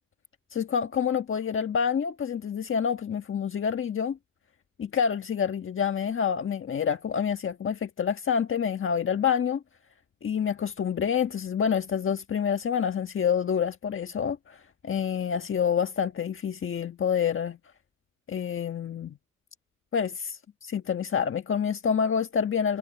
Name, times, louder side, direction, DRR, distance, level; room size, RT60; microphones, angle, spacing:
voice 1, 0.5-4.2 4.8-9.6 10.2-14.6 14.8-17.6 18.3-19.2 19.9-22.8, left 7 dB, 45° left, 1.5 m, -27 dB
cardioid pair, 90°, 30 cm